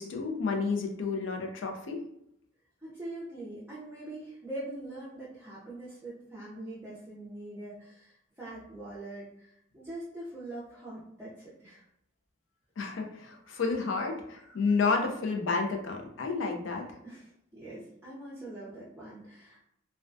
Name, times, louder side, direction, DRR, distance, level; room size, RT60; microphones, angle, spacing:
voice 1, 0.0-2.0 12.8-16.9, left 4 dB, 85° left, 3 dB, 0.5 m, -30 dB
voice 2, 2.8-11.8 13.4-13.6 14.4-14.6 17.0-19.6, right 1 dB, 10° right, -9 dB, 0.4 m, -43 dB
2.2 x 2.2 x 2.5 m, 0.76 s
head